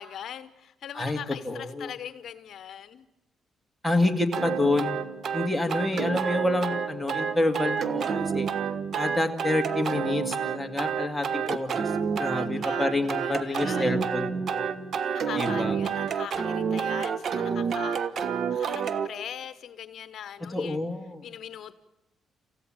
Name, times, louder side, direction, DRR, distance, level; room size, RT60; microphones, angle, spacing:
voice 1, 0.0-3.1 12.4-13.9 15.0-20.8 21.2-21.8, left 9 dB, 65° left, 12 dB, 1.0 m, -41 dB
voice 2, 1.4-1.9 3.8-4.9 5.3-8.5 9.0-11.9 12.2-14.7 15.3-15.8 20.5-21.2, left 2 dB, 5° left, 4 dB, 2.2 m, -28 dB
sound 1, 4.3-19.1, right 6 dB, 55° right, 1.2 m, -29 dB
28.5 x 15.5 x 9.0 m, 1.0 s
cardioid pair, 90°, 0 cm